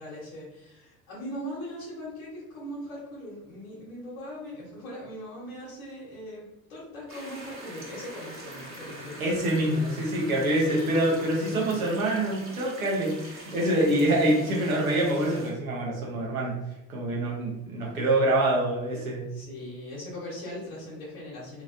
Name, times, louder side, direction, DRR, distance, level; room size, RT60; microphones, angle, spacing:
voice 1, 0.0-9.2 10.5-11.8 13.9-14.2 19.3-21.6, equal, 80° left, -6 dB, 1.2 m, -40 dB
sound 1, 7.1-15.5, right 2 dB, 30° right, 1.3 m, -44 dB
voice 2, 9.2-16.6 16.9-19.3, right 1 dB, 85° right, -3 dB, 0.9 m, -25 dB
2.9 x 2.7 x 2.5 m, 0.90 s
figure-of-eight pair, 60°, 41 cm